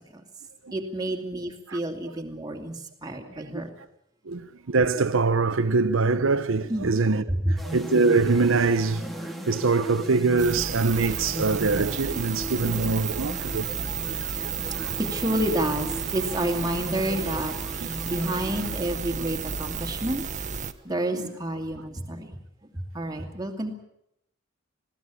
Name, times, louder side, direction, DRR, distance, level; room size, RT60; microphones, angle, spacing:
voice 1, 0.7-3.7 6.7-6.9 7.3-7.6 15.0-20.3 20.8-22.3 22.7-23.8, right 1 dB, 20° right, 2.5 m, -29 dB
voice 2, 3.2-3.6 4.3-13.8 14.0-15.0 17.8-17.9 21.1-21.3, right 4 dB, 75° right, 0.7 m, -24 dB
sound 1, 7.6-19.4, right 1 dB, ahead, 1.9 m, -37 dB
sound 2, 10.4-20.7, right 6 dB, 35° right, 1.0 m, -32 dB
20.5 x 16.0 x 8.5 m
head